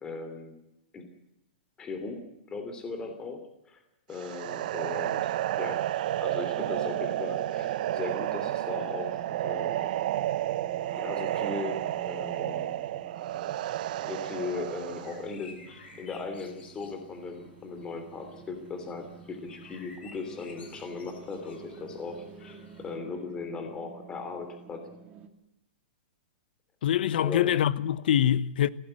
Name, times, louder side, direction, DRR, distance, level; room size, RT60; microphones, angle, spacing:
voice 1, 0.0-0.5 0.9-1.1 1.8-3.8 4.1-5.8 6.2-9.9 10.9-12.8 14.0-24.9 27.2-27.6, left 4 dB, 15° left, 3.0 m, -38 dB
sound 1, 4.1-15.3, right 13 dB, 50° right, 0.8 m, -31 dB
sound 2, 6.5-25.3, right 6 dB, 20° right, 2.3 m, -49 dB
sound 3, 14.3-23.0, left 3 dB, 80° left, 7.7 m, -54 dB
voice 2, 26.8-28.7, left 10 dB, 60° left, 1.1 m, -24 dB
23.5 x 17.5 x 7.8 m
hypercardioid pair, 165°, 6 cm